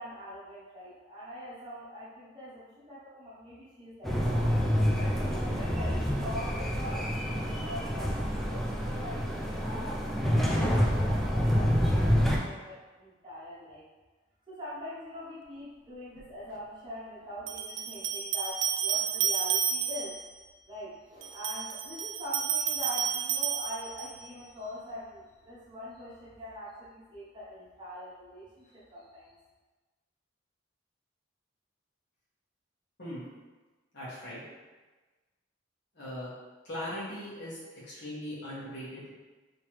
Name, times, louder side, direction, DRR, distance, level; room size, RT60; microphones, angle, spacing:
voice 1, 0.0-4.5 4.9-13.8 14.5-20.2 20.7-29.4, equal, 25° right, -9 dB, 0.9 m, -43 dB
sound 1, 4.0-12.4, equal, ahead, 0.4 m, -27 dB
sound 2, 16.2-16.3 17.5-20.3 21.2-24.3, right 8 dB, 75° right, 0.3 m, -31 dB
voice 2, 33.9-34.4 35.9-36.3 36.6-37.6 37.9-39.1, left 1 dB, 65° left, -8 dB, 1.4 m, -39 dB
3.3 x 3.0 x 3.0 m, 1.3 s
head